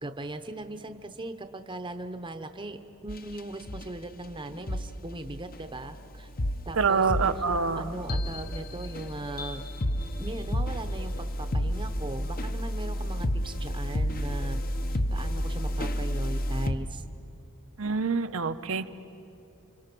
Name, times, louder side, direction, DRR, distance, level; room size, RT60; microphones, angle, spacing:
voice 1, 0.0-6.3 6.7-7.1 7.7-9.7 10.2-14.6 14.9-17.0, right 2 dB, 25° right, 8 dB, 0.8 m, -39 dB
sound 1, 3.1-3.4 3.7-3.9 4.7-4.9 5.5-16.7, equal, 45° left, 0.9 m, -31 dB
voice 2, 6.8-7.9 17.8-18.9, right 5 dB, 70° right, 10 dB, 0.8 m, -26 dB
30.0 x 25.5 x 6.1 m, 2.8 s
head